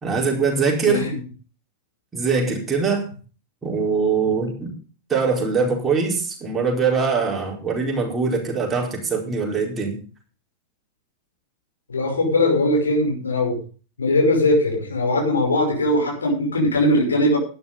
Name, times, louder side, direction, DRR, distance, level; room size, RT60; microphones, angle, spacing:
voice 1, 0.0-1.0 2.1-3.1 3.6-4.7 5.1-10.0, right 5 dB, 15° right, -1 dB, 4.7 m, -22 dB
voice 2, 0.8-1.2 11.9-13.6 14.0-17.4, left 1 dB, 75° left, 1 dB, 5.7 m, -20 dB
12.0 x 11.0 x 5.3 m, 0.38 s
figure-of-eight pair, 90°, 0 cm